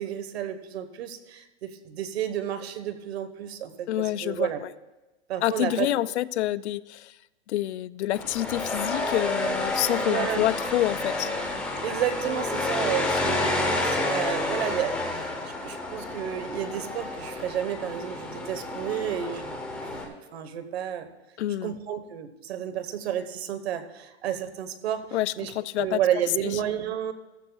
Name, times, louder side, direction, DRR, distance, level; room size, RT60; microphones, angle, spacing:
voice 1, 0.0-4.6 5.3-5.9 10.1-10.4 11.8-15.3 15.6-21.1 21.6-25.1 25.4-25.5 25.8-27.1, right 10 dB, 60° right, 9 dB, 1.2 m, -31 dB
voice 2, 3.9-4.7 5.4-7.2 7.5-11.3 21.4-21.8 25.1-26.0, left 14 dB, 70° left, 17 dB, 0.5 m, -27 dB
sound 1, 8.1-20.0, left 2 dB, 5° left, 0.6 m, -30 dB
15.5 x 14.0 x 2.3 m, 1.1 s
supercardioid pair, 165°, 35 cm